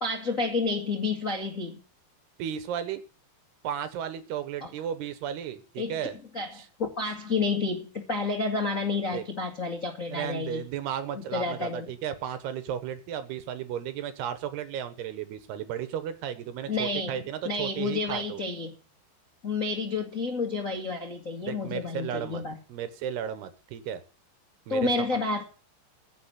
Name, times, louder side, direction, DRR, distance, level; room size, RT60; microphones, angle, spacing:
voice 1, 0.0-1.8 4.6-4.7 5.8-5.9 6.3-10.6 11.2-11.9 16.7-18.7 19.4-22.6 24.7-25.4, left 3 dB, 90° left, 0 dB, 0.7 m, -30 dB
voice 2, 2.4-3.0 3.6-6.1 6.5-6.7 9.1-9.2 10.1-18.4 21.4-22.4 22.7-24.0 24.7-24.9, right 9 dB, 75° right, 11 dB, 2.8 m, -34 dB
16.0 x 6.7 x 7.7 m, 0.37 s
omnidirectional pair, 5.4 m